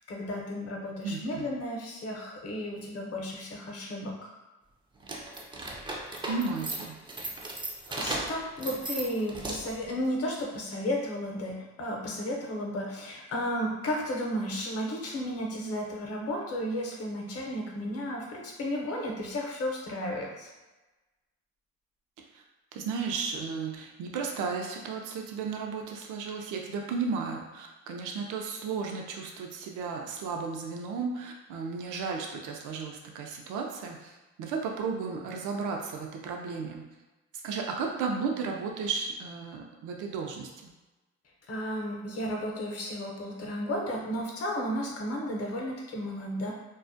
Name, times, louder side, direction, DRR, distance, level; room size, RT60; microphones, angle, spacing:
voice 1, 0.1-4.3 7.9-20.5 41.5-46.5, equal, 50° left, -1 dB, 0.7 m, -33 dB
voice 2, 1.0-1.5 6.2-7.0 22.3-22.4 22.7-36.9 37.4-40.7, right 5 dB, 80° right, 1 dB, 0.5 m, -34 dB
sound 1, 5.0-9.9, right 2 dB, 15° right, 0.3 m, -36 dB
2.3 x 2.1 x 2.6 m, 1.1 s
cardioid pair, 90°, 30 cm